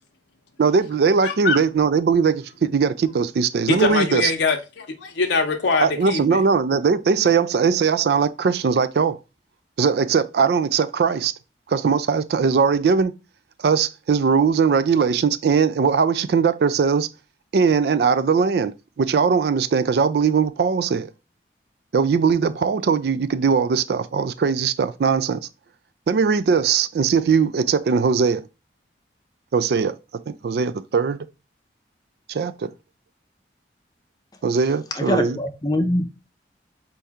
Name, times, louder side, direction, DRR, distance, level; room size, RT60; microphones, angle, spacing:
voice 1, 0.6-4.3 5.8-9.2 9.8-11.3 11.7-13.1 13.6-17.1 17.5-21.1 21.9-25.4 26.1-28.4 29.5-29.9 30.3-31.3 32.3-32.7 34.4-35.4, right 5 dB, 60° right, 0.3 m, -20 dB
voice 2, 1.2-1.6 3.7-6.4, left 4 dB, 80° left, 0.7 m, -23 dB
voice 3, 35.0-36.0, left 1 dB, 20° left, 0.5 m, -23 dB
4.4 x 2.7 x 3.5 m
head